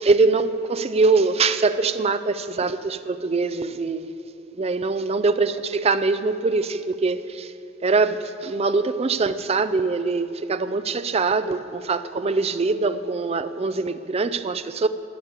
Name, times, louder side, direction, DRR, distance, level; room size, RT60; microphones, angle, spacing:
voice 1, 0.0-4.1 4.5-7.5 7.8-14.9, right 3 dB, 30° right, 0.4 m, -23 dB
12.5 x 7.3 x 8.0 m
head